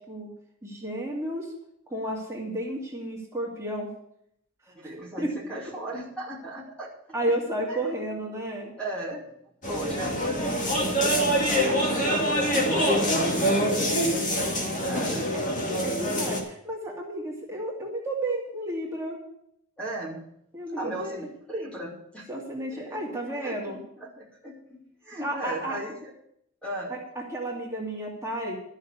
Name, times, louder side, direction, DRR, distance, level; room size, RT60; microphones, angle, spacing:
voice 1, 0.6-1.5 1.9-3.9 4.8-5.3 7.1-8.7 9.8-9.9 12.6-12.9 15.3-15.5 15.8-19.2 20.5-21.3 22.3-23.8 25.2-25.8 26.9-27.0 27.3-28.5, right 1 dB, 15° right, -3 dB, 2.6 m, -32 dB
voice 2, 4.7-6.9 7.3-7.4 7.7-7.8 8.8-9.3 9.7-11.6 11.9-13.2 13.7-15.3 19.8-20.2 20.7-22.3 22.7-24.8 25.0-26.1 26.6-26.9, right 1 dB, 5° left, -4 dB, 2.5 m, -37 dB
sound 1, 9.6-16.4, equal, 35° left, 2.3 m, -25 dB
13.0 x 6.5 x 8.1 m, 0.72 s
head